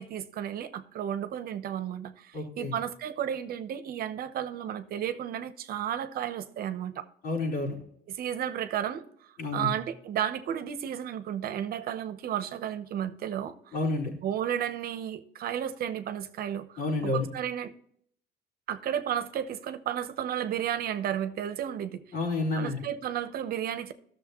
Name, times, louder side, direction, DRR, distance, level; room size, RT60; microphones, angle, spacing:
voice 1, 0.0-7.0 8.1-9.1 9.5-13.6 14.2-17.7 18.7-22.0 22.5-23.9, right 10 dB, 60° right, 0.9 m, -33 dB
voice 2, 2.3-2.7 7.2-7.8 9.4-9.7 13.7-14.1 16.8-17.3 22.1-22.8, left 2 dB, 70° left, 4.5 m, -29 dB
13.5 x 6.7 x 3.0 m
cardioid pair, 110°, 17 cm